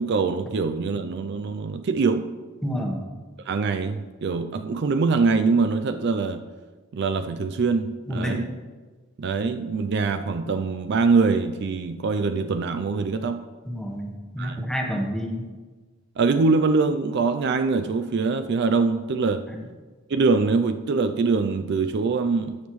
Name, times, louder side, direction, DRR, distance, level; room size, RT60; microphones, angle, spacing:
voice 1, 0.0-2.4 3.5-6.4 6.9-8.6 9.2-13.4 14.4-14.7 16.2-19.5 20.1-22.6, right 4 dB, 55° right, 9 dB, 0.4 m, -23 dB
voice 2, 2.6-3.0 8.1-8.4 13.7-15.4 19.5-19.6, equal, ahead, 1 dB, 1.1 m, -29 dB
13.0 x 7.2 x 3.1 m, 1.4 s
head